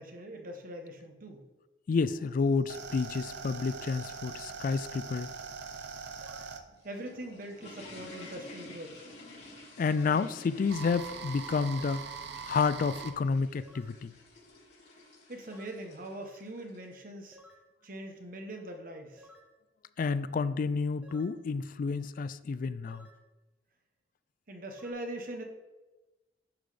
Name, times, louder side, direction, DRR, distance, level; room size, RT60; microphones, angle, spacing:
voice 1, 0.0-1.5 6.8-9.1 15.3-17.4 17.8-19.3 24.5-25.4, right 1 dB, 55° right, 4 dB, 1.1 m, -42 dB
voice 2, 1.9-5.3 9.8-12.0 12.4-14.1 20.0-23.1, left 4 dB, 50° left, 14 dB, 0.3 m, -30 dB
sound 1, 2.1-8.3 9.3-13.1, right 5 dB, 70° right, 0.7 m, -42 dB
sound 2, 6.2-6.6 8.1-8.4 9.9-10.3 11.8-12.1 13.6-14.0 15.5-15.8 17.3-17.7 19.2-19.5 21.0-21.4 22.9-23.2 24.7-24.9, left 1 dB, 10° right, 0.8 m, -56 dB
sound 3, 6.7-16.8, left 2 dB, 80° left, 3.0 m, -51 dB
10.5 x 3.9 x 5.0 m, 1.1 s
head